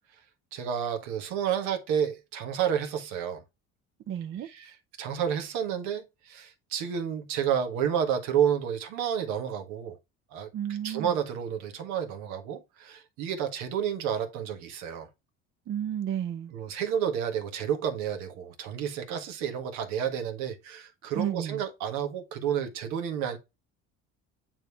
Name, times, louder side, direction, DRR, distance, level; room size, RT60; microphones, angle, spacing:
voice 1, 0.5-3.4 4.4-10.0 10.3-10.5 10.8-15.1 16.5-23.4, right 8 dB, 90° right, 1.4 m, -30 dB
voice 2, 4.1-4.5 10.5-11.2 15.7-16.5 21.1-21.6, right 10 dB, 45° right, 0.5 m, -32 dB
9.0 x 3.1 x 3.4 m
cardioid pair, 125°, 29 cm